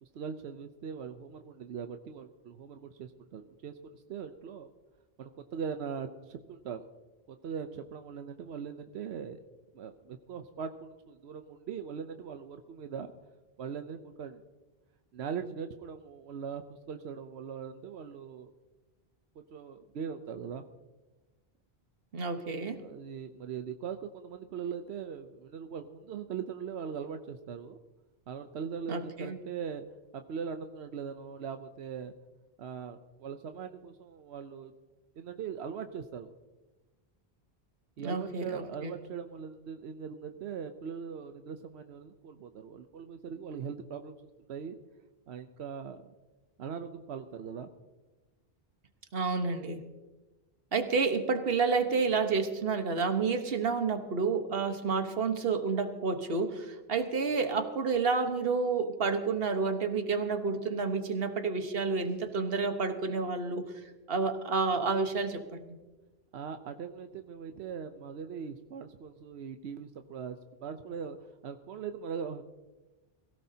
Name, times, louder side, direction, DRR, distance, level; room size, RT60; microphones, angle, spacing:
voice 1, 0.0-4.7 5.2-6.8 7.3-9.4 9.7-13.1 13.6-14.4 15.1-18.5 19.5-20.6 22.8-27.8 28.3-29.8 30.1-32.1 32.6-34.7 35.2-36.3 38.0-44.2 44.5-44.8 45.3-46.1 46.6-47.7 66.3-72.4, right 6 dB, 90° right, 7 dB, 1.0 m, -40 dB
voice 2, 22.1-22.8 28.9-29.4 38.0-38.9 49.1-49.8 50.7-63.7 64.1-65.8, right 4 dB, 65° right, 7 dB, 1.4 m, -30 dB
22.0 x 16.5 x 2.8 m, 1.2 s
omnidirectional pair, 1.1 m